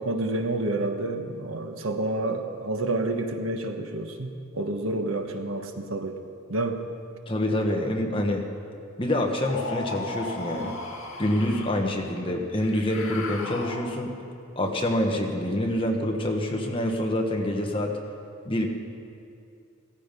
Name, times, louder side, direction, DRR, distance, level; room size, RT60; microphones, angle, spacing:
voice 1, 0.0-6.2 6.5-6.8, right 2 dB, 70° right, 5 dB, 1.2 m, -29 dB
voice 2, 7.3-8.5 9.0-10.7 11.2-14.1 14.5-18.0 18.4-18.7, left 1 dB, 25° left, 2 dB, 1.4 m, -26 dB
sound 1, 9.4-11.9 12.5-14.2, left 3 dB, 85° left, 1.8 m, -36 dB
16.5 x 14.5 x 5.3 m, 2.5 s
head